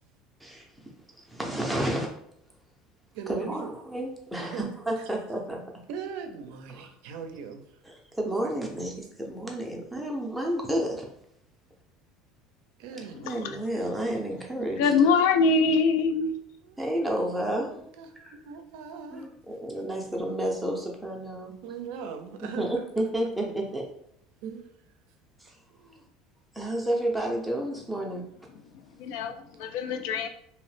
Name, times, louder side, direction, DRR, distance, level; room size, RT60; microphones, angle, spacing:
voice 1, 1.2-2.1 3.3-5.6 6.8-6.9 7.8-11.1 13.2-14.9 16.8-17.7 18.2-18.4 19.1-21.6 22.4-23.9 25.4-25.5 26.5-28.2, right 1 dB, ahead, -1 dB, 0.5 m, -31 dB
voice 2, 3.1-3.7 4.4-4.7 5.9-7.6 12.8-13.3 14.6-14.7 16.6-19.3 21.6-23.5 24.4-24.8 25.7-26.0, right 6 dB, 70° right, 6 dB, 0.4 m, -40 dB
voice 3, 14.8-16.3 29.0-30.3, left 4 dB, 75° left, 8 dB, 0.3 m, -23 dB
2.8 x 2.0 x 3.1 m, 0.73 s
cardioid pair, 165°, 0 cm